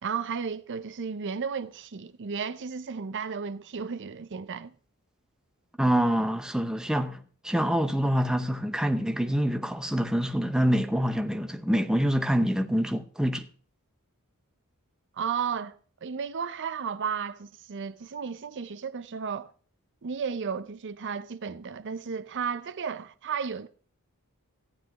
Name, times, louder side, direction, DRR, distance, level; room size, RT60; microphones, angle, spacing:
voice 1, 0.0-4.7 15.2-19.5 20.0-23.7, right 6 dB, 55° right, 0.6 m, -33 dB
voice 2, 5.8-7.2 7.4-13.5, equal, 5° right, 0.7 m, -26 dB
14.5 x 9.7 x 2.9 m
head